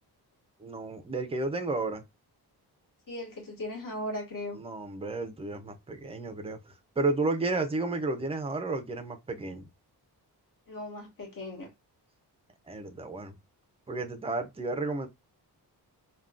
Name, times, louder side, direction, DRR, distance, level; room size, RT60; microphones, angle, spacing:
voice 1, 0.6-2.0 4.5-9.7 12.7-13.4 13.9-15.1, right 3 dB, 15° right, 0.4 m, -32 dB
voice 2, 3.1-4.6 10.7-11.7, left 1 dB, 55° left, 1.6 m, -37 dB
3.5 x 2.2 x 2.3 m
wide cardioid pair, 170°, 39 cm